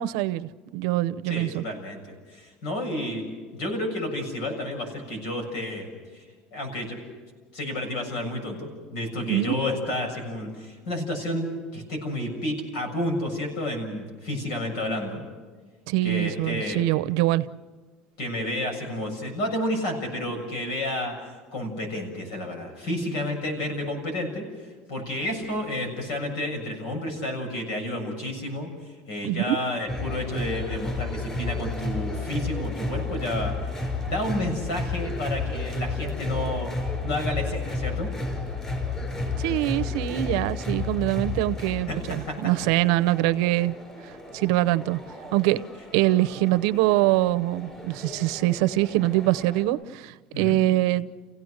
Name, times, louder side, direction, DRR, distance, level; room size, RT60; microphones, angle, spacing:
voice 1, 0.0-1.6 9.3-9.6 15.9-17.5 29.2-29.6 39.4-43.8 44.0-45.0 45.3-45.6 45.9-51.1, right 16 dB, 85° right, 12 dB, 0.8 m, -24 dB
voice 2, 1.3-3.3 3.5-6.2 6.5-7.0 7.5-15.2 16.0-16.9 18.2-21.1 21.5-24.5 24.9-33.5 34.1-36.7 37.0-38.1 41.9-42.5 50.3-50.6, left 1 dB, 85° left, 4 dB, 7.0 m, -31 dB
sound 1, 29.9-49.6, left 3 dB, 20° left, 5.2 m, -32 dB
30.0 x 16.5 x 6.5 m, 1.5 s
cardioid pair, 150°, 3 cm